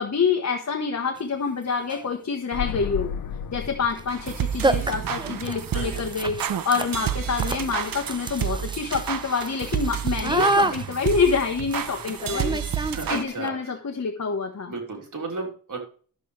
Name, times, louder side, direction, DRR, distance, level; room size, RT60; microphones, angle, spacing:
voice 1, 0.0-3.1 3.5-6.4 6.6-12.6 13.1-14.7, left 5 dB, 55° left, 3 dB, 1.2 m, -26 dB
sound 1, 1.2-1.3 1.8-2.2 3.9-4.0 4.3-4.4 4.6-13.5, right 2 dB, 15° right, 0.7 m, -29 dB
sound 2, 2.5-6.3 6.5-6.6, left 7 dB, 75° left, 0.7 m, -35 dB
sound 3, 4.1-13.2, right 9 dB, 80° right, 0.7 m, -30 dB
voice 2, 4.7-5.1 5.7-6.1 12.9-13.8 14.7-15.8, right 3 dB, 65° right, 0 dB, 3.7 m, -35 dB
11.0 x 7.7 x 3.3 m, 0.42 s
cardioid pair, 70°, 33 cm